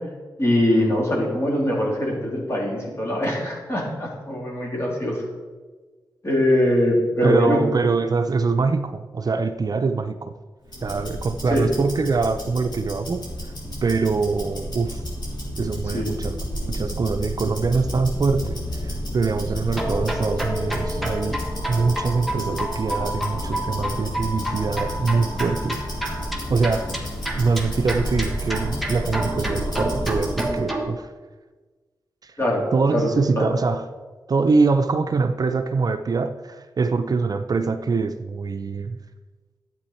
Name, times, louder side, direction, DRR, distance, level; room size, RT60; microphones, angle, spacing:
voice 1, 0.4-5.2 6.2-7.6 11.5-11.7 15.9-16.1 32.4-32.6 32.9-33.1 33.4-33.5, left 1 dB, 35° left, -3 dB, 3.4 m, -22 dB
voice 2, 7.2-10.3 10.8-13.2 13.8-15.0 15.6-16.3 16.7-25.8 26.5-26.9 27.4-31.1 32.2-32.3 32.7-33.9 34.3-39.0, right 4 dB, 50° right, 8 dB, 0.5 m, -24 dB
Tick-tock, 10.6-30.6, equal, 60° left, 4.0 m, -31 dB
sound 1, 19.7-30.9, right 1 dB, ahead, 1.4 m, -30 dB
12.0 x 8.4 x 4.4 m, 1.3 s
wide cardioid pair, 90°, 8 cm